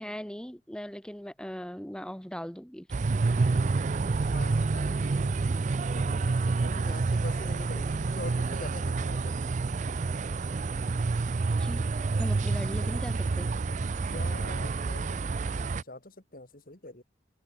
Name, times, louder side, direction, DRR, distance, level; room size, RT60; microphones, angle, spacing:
voice 1, 0.0-2.9 11.6-13.5, equal, 5° left, 1.0 m, -39 dB
sound 1, 2.9-15.8, right 3 dB, 40° right, 0.4 m, -28 dB
voice 2, 4.0-5.3 5.8-9.4 13.7-17.0, left 2 dB, 50° left, 3.0 m, -44 dB
head